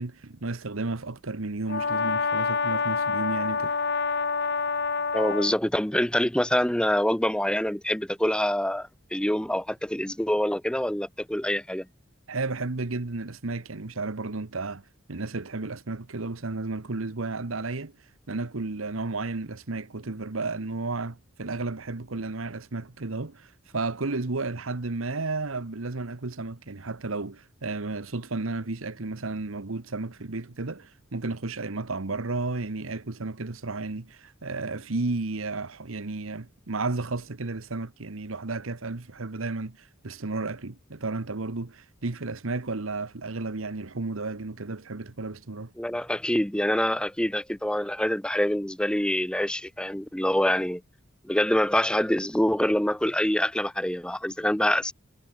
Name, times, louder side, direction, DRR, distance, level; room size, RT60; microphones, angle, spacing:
voice 1, 0.0-3.7 12.3-17.9 18.3-45.7, right 3 dB, 80° right, 1.2 m, -33 dB
Brass instrument, 1.7-5.6, left 5 dB, 55° left, 1.5 m, -27 dB
voice 2, 5.1-11.9 45.8-50.8 51.2-54.9, left 1 dB, 5° left, 0.7 m, -25 dB
head